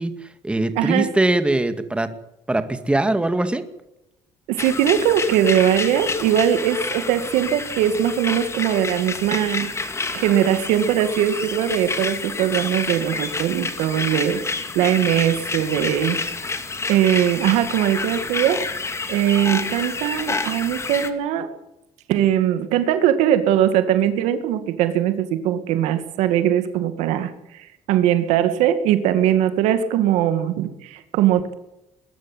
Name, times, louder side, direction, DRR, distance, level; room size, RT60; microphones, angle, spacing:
voice 1, 0.0-2.1 2.5-3.6, right 2 dB, 10° right, 9 dB, 2.2 m, -22 dB
voice 2, 0.8-1.1 4.5-9.7 10.1-16.2 16.9-18.6 19.1-21.5 22.1-27.3 27.9-31.5, right 10 dB, 85° right, 10 dB, 2.3 m, -20 dB
sound 1, 4.6-21.1, left 4 dB, 25° left, 2.5 m, -29 dB
21.5 x 12.5 x 9.8 m, 0.89 s
cardioid pair, 100°, 11 cm